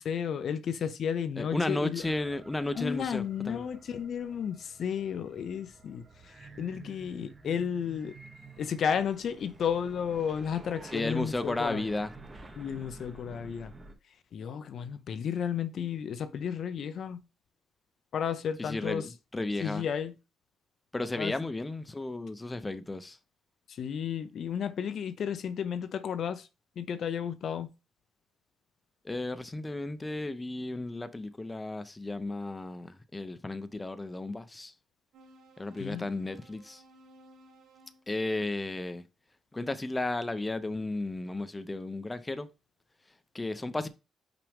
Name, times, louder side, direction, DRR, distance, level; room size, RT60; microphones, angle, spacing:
voice 1, 0.0-2.0 2.8-8.2 8.6-11.9 12.6-13.7 14.3-17.2 18.1-19.1 19.6-20.1 21.2-21.3 23.7-26.5 26.8-27.7 35.8-36.1, left 8 dB, 60° left, 0.7 m, -33 dB
voice 2, 1.4-3.6 10.9-12.1 18.7-19.8 20.9-23.2 29.0-34.7 35.6-36.8 38.1-39.0 39.5-42.5 43.3-43.9, left 2 dB, 15° left, 0.7 m, -34 dB
sound 1, 2.0-14.0, right 3 dB, 25° right, 1.3 m, -51 dB
sound 2, 35.1-38.1, right 1 dB, 80° right, 2.8 m, -57 dB
5.8 x 5.1 x 3.5 m
cardioid pair, 90°, 0 cm